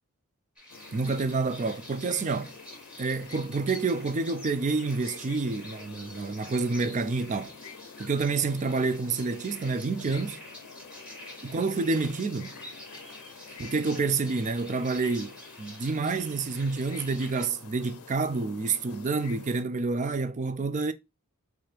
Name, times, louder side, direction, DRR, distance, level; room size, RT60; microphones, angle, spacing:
sound 1, 0.6-17.5, equal, 5° right, 1.3 m, -47 dB
sound 2, 0.7-19.6, left 6 dB, 85° left, 0.5 m, -48 dB
voice 1, 0.9-2.5 3.0-7.5 8.0-10.4 11.4-12.5 13.6-20.9, right 4 dB, 35° right, 0.4 m, -28 dB
4.7 x 2.5 x 3.1 m
head